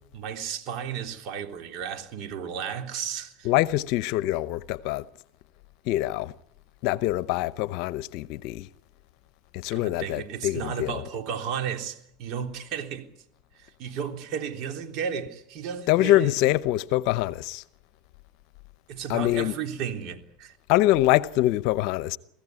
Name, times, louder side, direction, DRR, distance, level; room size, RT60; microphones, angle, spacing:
voice 1, 0.1-3.5 9.7-13.1 13.6-16.3 18.9-20.6, right 7 dB, 55° right, 3.5 m, -33 dB
voice 2, 3.4-5.0 5.9-6.3 6.8-8.7 9.5-11.0 15.9-17.6 19.1-19.5 20.7-22.2, left 15 dB, 65° left, 0.8 m, -24 dB
23.5 x 16.0 x 9.6 m
hypercardioid pair, 95°, 0 cm